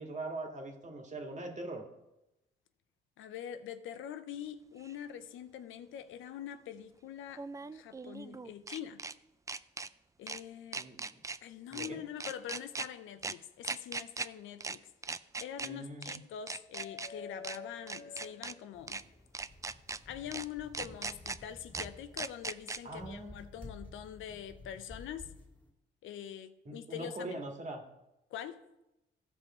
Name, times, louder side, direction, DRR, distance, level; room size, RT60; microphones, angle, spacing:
voice 1, 0.0-1.9 10.7-11.1 11.7-12.0 15.6-16.2 22.8-23.5 26.7-27.8, right 2 dB, 35° right, 2.0 m, -42 dB
voice 2, 3.2-9.1 10.2-10.9 11.4-14.8 15.4-19.0 20.1-25.3 26.0-27.5 28.3-28.6, left 9 dB, 80° left, 0.7 m, -44 dB
sound 1, 4.8-4.9 7.3-9.1 9.5-9.9 10.3-10.4 10.7-11.4 11.7-11.9 12.2-12.9 13.2-13.3 13.6-14.3 14.6-14.8 15.0-15.7 16.0-16.2 16.5-17.1 17.4-17.6 17.9-18.5 18.9-19.0 19.3-20.0 20.3-20.4 20.7-21.4 21.7-21.9 22.2-22.8, right 4 dB, 15° right, 0.4 m, -39 dB
sound 2, 16.7-19.1 20.8-20.9 22.7-22.9, left 4 dB, 40° left, 0.8 m, -48 dB
sound 3, 18.7-25.7, left 2 dB, 5° left, 2.4 m, -53 dB
15.5 x 5.4 x 4.3 m
cardioid pair, 90°, 20 cm